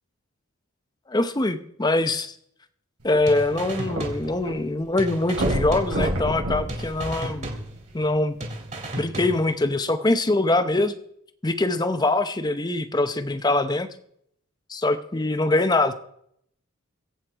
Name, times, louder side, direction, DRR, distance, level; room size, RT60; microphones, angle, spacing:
voice 1, 1.1-2.3 3.0-7.5 7.9-8.4 9.0-10.9 11.4-13.9 14.7-15.9, left 2 dB, 20° left, 10 dB, 0.7 m, -23 dB
sound 1, 3.0-4.5 4.8-4.9 5.3-7.9 8.6-8.7, right 1 dB, 85° right, 4.8 m, -28 dB
sound 2, 3.3-4.7 5.0-6.4 6.7-8.1 8.4-9.7, right 1 dB, 35° right, 2.5 m, -35 dB
23.0 x 8.3 x 4.6 m, 0.71 s
head